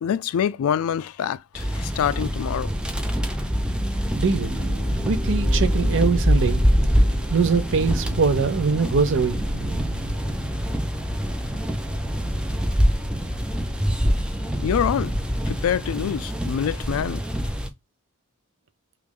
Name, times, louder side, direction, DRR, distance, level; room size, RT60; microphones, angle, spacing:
voice 1, 0.0-2.7 14.6-15.2 15.4-17.2, left 8 dB, 70° left, 0.3 m, -25 dB
sound 1, 1.6-17.7, equal, 5° right, 0.4 m, -25 dB
Piano, 3.1-10.6, right 1 dB, 25° left, 0.6 m, -40 dB
voice 2, 4.2-4.5 5.0-6.6 7.3-9.4, right 5 dB, 60° right, 0.5 m, -22 dB
sound 2, 4.3-17.1, right 1 dB, 40° right, 0.9 m, -37 dB
3.2 x 2.4 x 3.4 m
head